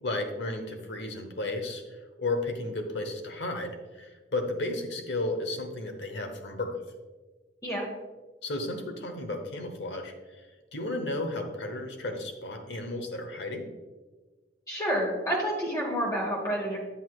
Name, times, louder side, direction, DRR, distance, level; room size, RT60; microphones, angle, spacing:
voice 1, 0.0-6.8 8.4-10.4 10.7-13.6, left 2 dB, 75° left, 5 dB, 1.0 m, -33 dB
voice 2, 14.7-16.8, equal, 20° left, -3 dB, 1.1 m, -29 dB
8.2 x 8.0 x 2.4 m, 1.3 s
head